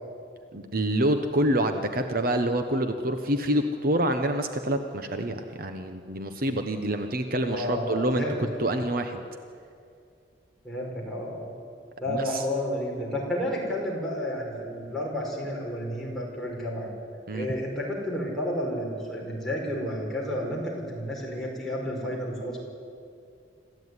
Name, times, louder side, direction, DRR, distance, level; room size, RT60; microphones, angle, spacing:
voice 1, 0.5-9.2 12.1-12.4 17.3-17.5, right 1 dB, 50° right, 7 dB, 1.1 m, -27 dB
voice 2, 7.3-8.7 10.6-11.5 12.0-16.9 17.3-22.6, left 1 dB, ahead, -4 dB, 5.3 m, -31 dB
26.0 x 14.5 x 9.7 m, 2.4 s
head